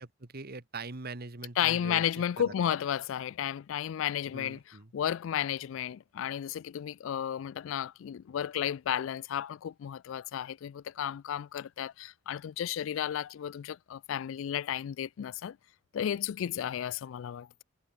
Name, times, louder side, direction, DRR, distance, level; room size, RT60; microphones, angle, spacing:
voice 1, 0.0-2.5 4.3-4.9, right 3 dB, 50° right, 1.5 m, -43 dB
voice 2, 1.6-4.6 4.9-15.6 15.9-17.5, left 9 dB, 70° left, 0.3 m, -33 dB
head